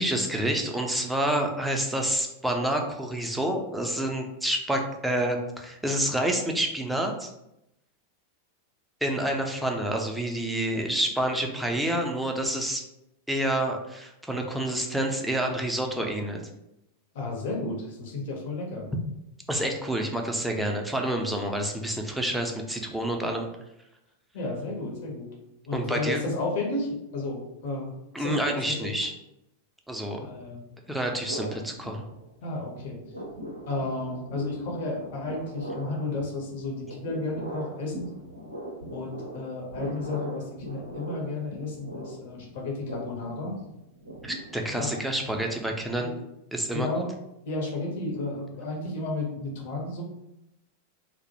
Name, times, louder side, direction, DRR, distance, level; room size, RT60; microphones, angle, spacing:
voice 1, 0.0-7.3 9.0-12.8 13.3-16.4 19.5-23.5 25.7-26.2 28.1-29.1 29.9-30.2 30.9-32.0 44.2-46.1 46.5-46.9, right 1 dB, 5° right, 2 dB, 0.4 m, -28 dB
voice 2, 17.1-18.9 24.3-25.3 25.7-27.9 28.2-29.0 30.2-30.6 32.4-33.0 33.7-38.1 38.9-43.6 44.8-44.9 46.0-46.2 46.7-47.2 47.4-50.0, left 2 dB, 55° left, 0 dB, 0.7 m, -32 dB
sound 1, 31.3-32.5 32.8-45.9, right 1 dB, 80° right, 0.4 m, -40 dB
2.1 x 2.0 x 2.8 m, 0.86 s
figure-of-eight pair, 90°, 0 cm